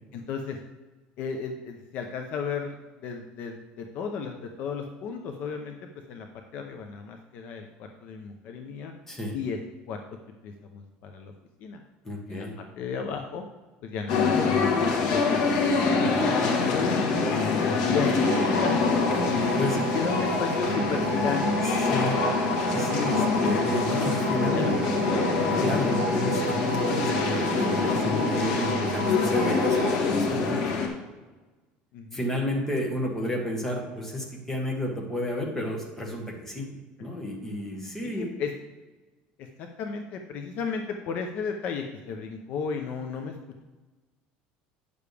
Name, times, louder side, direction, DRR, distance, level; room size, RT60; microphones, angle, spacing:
voice 1, 0.1-0.6 1.2-5.7 6.1-6.3 6.5-8.9 9.3-9.6 9.9-10.0 10.4-11.3 11.6-11.8 12.3-12.5 12.8-13.4 13.8-17.2 17.8-18.8 19.4-19.5 19.9-21.7 24.4-24.7 25.1-25.4 31.9-32.2 38.0-38.5 39.4-43.4, left 6 dB, 45° left, 4 dB, 0.7 m, -34 dB
voice 2, 12.0-12.5 19.6-19.8 21.5-22.2 22.7-24.7 25.6-30.7 32.1-36.7 37.0-38.3, left 1 dB, 10° left, -1 dB, 1.4 m, -32 dB
sound 1, 14.1-30.9, left 4 dB, 75° left, 1.5 m, -25 dB
sound 2, 18.2-30.1, right 3 dB, 35° right, 1.1 m, -31 dB
9.6 x 6.9 x 3.4 m, 1.2 s
cardioid pair, 170°, 4 cm